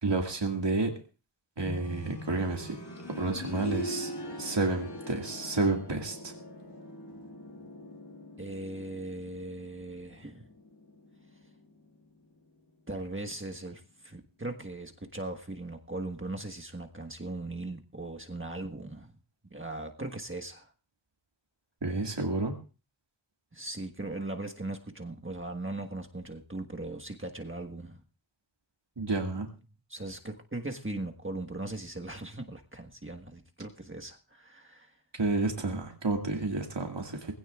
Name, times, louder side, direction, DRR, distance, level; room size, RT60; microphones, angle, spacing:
voice 1, 0.0-0.9 1.6-2.8 3.1-4.1 4.4-6.3 21.8-22.5 29.0-29.5 35.1-37.3, right 3 dB, 60° right, 2 dB, 2.2 m, -30 dB
sound 1, 1.6-12.4 13.8-13.9, left 1 dB, 50° left, 3.5 m, -43 dB
voice 2, 8.4-10.5 12.9-19.1 19.5-20.7 23.5-28.0 29.9-34.9, right 2 dB, 25° right, 3 dB, 1.5 m, -39 dB
20.0 x 16.5 x 2.5 m, 0.34 s
wide cardioid pair, 45°, 49 cm